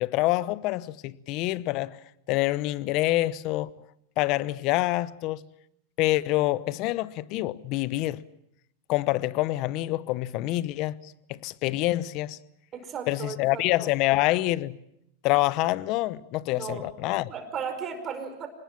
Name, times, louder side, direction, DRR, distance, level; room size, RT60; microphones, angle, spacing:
voice 1, 0.0-2.0 2.3-3.7 4.2-5.4 6.0-8.2 8.9-12.4 13.1-14.8 15.2-17.3, left 18 dB, 50° left, 0.9 m, -26 dB
voice 2, 12.7-13.9 16.5-16.8 17.3-18.5, right 6 dB, 30° right, 5.0 m, -36 dB
25.5 x 20.5 x 7.4 m
hypercardioid pair, 115°, 0 cm